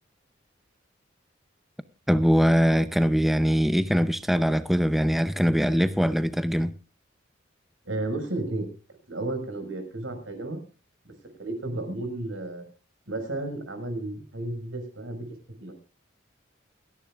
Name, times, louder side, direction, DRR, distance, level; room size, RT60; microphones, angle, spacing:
voice 1, 2.1-6.7, equal, ahead, 0.6 m, -22 dB
voice 2, 7.8-8.7 9.1-10.6 11.0-11.1 11.4-12.6 13.1-15.3 15.6-15.7, right 2 dB, 85° right, 5.4 m, -32 dB
29.5 x 10.5 x 2.4 m
head